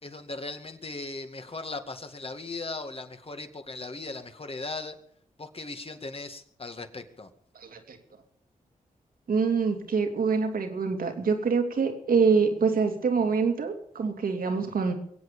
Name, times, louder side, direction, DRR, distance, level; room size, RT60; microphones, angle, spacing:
voice 1, 0.0-5.0 5.4-7.3, left 3 dB, 40° left, 7 dB, 2.1 m, -38 dB
voice 2, 7.5-8.0 9.3-14.9, right 5 dB, 75° right, 4 dB, 2.8 m, -25 dB
23.0 x 8.4 x 7.0 m, 0.69 s
cardioid pair, 50°, 15 cm